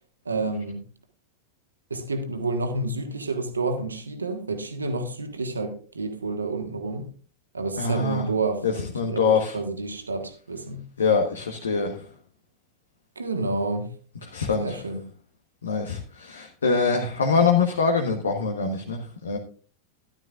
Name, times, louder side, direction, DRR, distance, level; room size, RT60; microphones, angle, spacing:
voice 1, 0.2-0.8 1.9-7.1 7.5-10.8 13.1-13.9 14.6-15.1, right 3 dB, 75° right, 1.5 m, -29 dB
voice 2, 7.8-8.3 8.6-9.5 11.0-11.9 14.3-14.7 15.6-19.4, left 5 dB, 70° left, 1.2 m, -24 dB
13.0 x 11.5 x 2.4 m
figure-of-eight pair, 90°, 0 cm